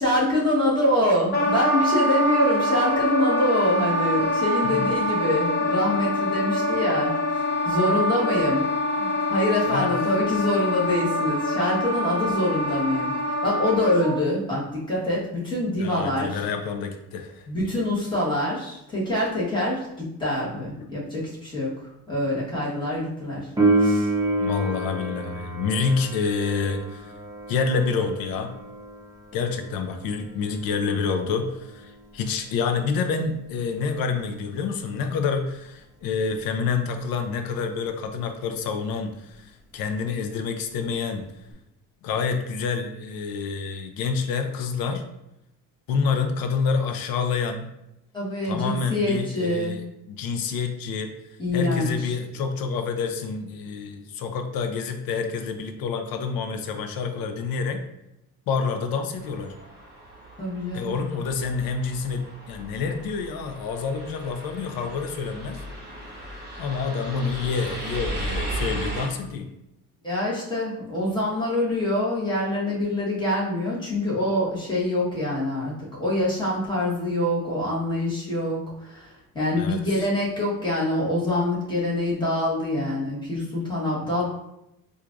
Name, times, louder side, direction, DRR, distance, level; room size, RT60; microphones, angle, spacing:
voice 1, 0.0-7.1 7.6-8.6 9.0-16.5 17.5-23.5 23.8-24.1 48.1-49.8 51.4-52.1 60.4-60.9 70.0-84.2, left 1 dB, 15° left, -7 dB, 1.3 m, -25 dB
Wind instrument woodwind instrument, 1.3-14.2, left 1 dB, 30° left, 0.9 m, -25 dB
voice 2, 15.8-17.5 24.4-27.1 27.5-28.5 29.3-41.3 42.0-45.1 45.9-47.7 48.4-51.1 51.5-57.8 58.5-59.5 60.7-65.6 66.6-69.5 79.5-79.8, left 5 dB, 80° left, 6 dB, 0.5 m, -28 dB
Piano, 23.6-34.0 41.5-41.6, right 2 dB, 10° right, 0.6 m, -29 dB
sound 1, 59.1-69.1, right 1 dB, 30° right, 1.2 m, -36 dB
4.4 x 2.5 x 2.5 m, 0.87 s
cardioid pair, 125°, 35 cm